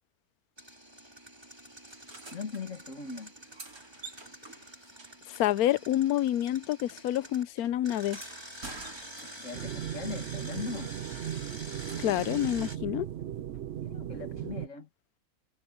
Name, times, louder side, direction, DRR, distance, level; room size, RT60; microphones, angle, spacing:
Engine, 0.6-7.4 7.8-12.8, right 1 dB, 15° right, 4.0 m, -47 dB
sound 1, 1.9-2.6 3.2-6.2 6.5-9.6 11.1-12.4 14.4-14.5, right 3 dB, 80° right, 5.0 m, -49 dB
voice 1, 2.3-3.3 9.4-11.0 13.8-14.9, left 4 dB, 60° left, 2.1 m, -39 dB
voice 2, 5.3-8.2 12.0-13.1, left 13 dB, 85° left, 1.1 m, -28 dB
sound 2, 9.5-14.7, right 11 dB, 60° right, 0.8 m, -37 dB
omnidirectional pair, 1.5 m